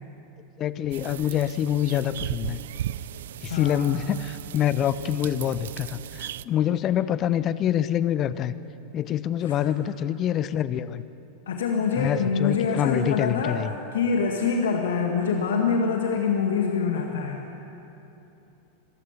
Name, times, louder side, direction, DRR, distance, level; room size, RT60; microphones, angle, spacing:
voice 1, 0.6-2.6 3.4-8.5 8.9-11.0 12.0-13.7, left 10 dB, 35° left, 15 dB, 0.8 m, -26 dB
sound 1, 0.9-6.4, right 11 dB, 65° right, 0.5 m, -36 dB
voice 2, 3.5-4.0 9.4-9.7 11.5-17.5, left 5 dB, 70° left, 2 dB, 1.9 m, -25 dB
26.0 x 15.0 x 9.6 m, 3.0 s
figure-of-eight pair, 90°, 0 cm